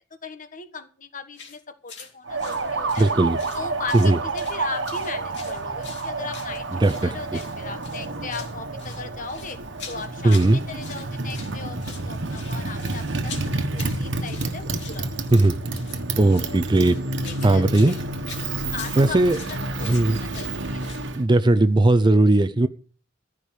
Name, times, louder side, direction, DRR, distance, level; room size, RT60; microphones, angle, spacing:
voice 1, 0.0-3.1 3.5-9.6 9.9-11.8 12.0-15.2 16.3-16.6 17.2-18.0 18.7-20.8, left 4 dB, 40° left, 9 dB, 1.3 m, -38 dB
sound 1, 1.3-1.6 1.9-2.1 2.4-3.6 3.9-4.6 4.8-7.1 7.3-7.5 7.8-8.5 8.8-10.5 10.8-11.5 11.8-21.1, left 6 dB, 60° left, 2.9 m, -42 dB
Motorcycle, 2.3-21.2, right 2 dB, 65° right, 1.3 m, -30 dB
voice 2, 3.0-3.4 3.9-4.2 6.8-7.4 10.2-10.6 15.3-15.6 16.2-17.0 17.4-17.9 19.0-19.4 19.8-20.2 21.1-22.7, right 2 dB, 25° right, 13 dB, 0.5 m, -18 dB
14.5 x 5.0 x 9.2 m, 0.41 s
head